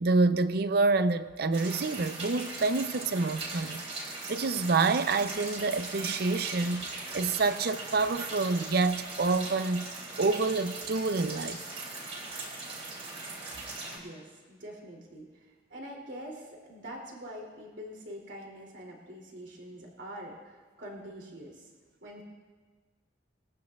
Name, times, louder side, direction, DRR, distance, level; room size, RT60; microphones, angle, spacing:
voice 1, 0.0-11.6, right 3 dB, 55° right, 0.5 m, -28 dB
sound 1, 1.5-14.0, right 2 dB, 35° right, 3.1 m, -40 dB
voice 2, 13.9-21.7 22.0-22.2, equal, 80° right, 2.8 m, -45 dB
21.5 x 14.5 x 2.4 m
head